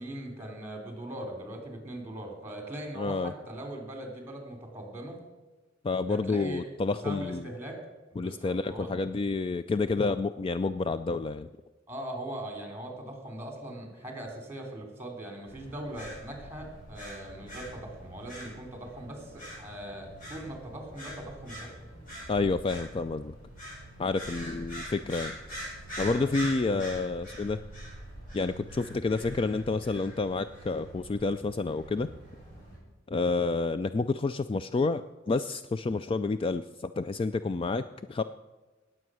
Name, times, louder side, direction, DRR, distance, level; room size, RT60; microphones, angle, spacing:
voice 1, 0.0-5.2 6.1-7.8 8.1-8.9 11.9-21.8 26.0-26.2, right 1 dB, 10° right, 3 dB, 3.2 m, -40 dB
voice 2, 3.0-3.3 5.8-7.4 8.2-11.5 22.3-23.3 24.0-25.4 26.0-27.6 28.3-32.1 33.1-37.8 38.1-38.2, left 3 dB, 30° left, 11 dB, 0.3 m, -29 dB
sound 1, 15.5-32.8, equal, 45° left, 5.8 m, -44 dB
19.0 x 7.7 x 6.2 m, 1.2 s
head